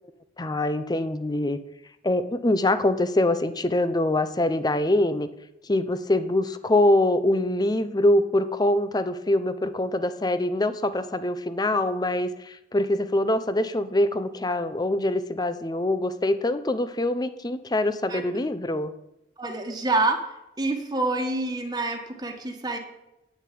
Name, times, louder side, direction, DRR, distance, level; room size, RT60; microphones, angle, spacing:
voice 1, 0.4-1.6 2.0-5.3 5.6-18.9, left 1 dB, 25° left, 12 dB, 0.7 m, -24 dB
voice 2, 19.4-22.8, right 2 dB, 25° right, 3 dB, 1.6 m, -27 dB
9.5 x 7.3 x 8.5 m, 0.88 s
head